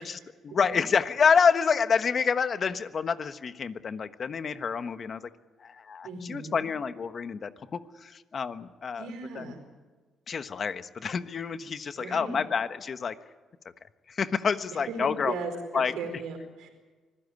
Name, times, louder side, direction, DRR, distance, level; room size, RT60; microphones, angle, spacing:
voice 1, 0.0-5.3 5.6-9.1 9.3-9.4 10.3-13.2 14.1-15.3 15.7-15.9, left 6 dB, 45° left, 11 dB, 1.3 m, -28 dB
voice 2, 6.0-6.6 9.0-9.7 12.0-12.4 14.9-16.7, right 4 dB, 85° right, 5 dB, 4.6 m, -37 dB
25.0 x 16.0 x 9.7 m, 1.3 s
cardioid pair, 90°, 0 cm